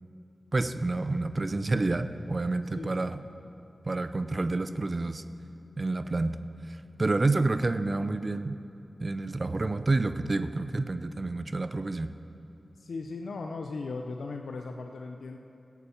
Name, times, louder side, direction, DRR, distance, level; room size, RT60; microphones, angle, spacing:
voice 1, 0.5-3.2 3.9-5.2 5.8-6.4 6.7-8.6 9.0-12.1, right 2 dB, 45° right, 11 dB, 0.6 m, -29 dB
voice 2, 2.8-3.2 9.6-9.7 12.8-15.4, left 3 dB, 80° left, 3 dB, 0.6 m, -38 dB
15.5 x 8.3 x 7.1 m, 2.8 s
cardioid pair, 40°, 0 cm